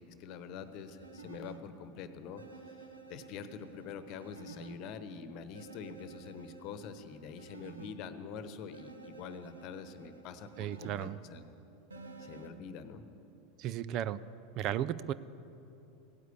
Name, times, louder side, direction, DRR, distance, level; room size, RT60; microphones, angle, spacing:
voice 1, 0.0-11.4 12.2-13.0, left 6 dB, 50° left, 11 dB, 1.0 m, -45 dB
sound 1, 0.6-1.6 2.4-4.8 5.5-7.9 8.7-11.1 11.9-12.5, right 4 dB, 80° right, 1.3 m, -51 dB
voice 2, 10.6-11.2 13.6-14.2 14.6-15.1, right 11 dB, 45° right, 17 dB, 0.4 m, -34 dB
16.5 x 9.4 x 8.2 m, 2.8 s
figure-of-eight pair, 85°, 0 cm